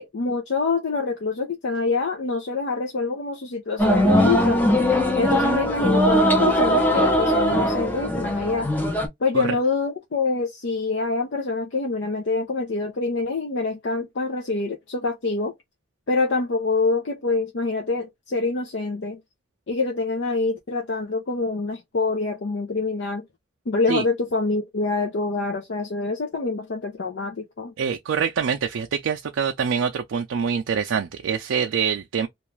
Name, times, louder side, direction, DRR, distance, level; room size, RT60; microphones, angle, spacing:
voice 1, 0.0-4.6 5.1-8.7 9.2-15.5 16.1-19.2 19.7-23.2 23.7-27.7, left 3 dB, 65° left, 0.5 m, -25 dB
sound 1, 3.8-9.1, equal, 10° left, 0.5 m, -20 dB
voice 2, 27.8-32.3, right 6 dB, 90° right, 0.4 m, -25 dB
2.5 x 2.3 x 3.1 m
head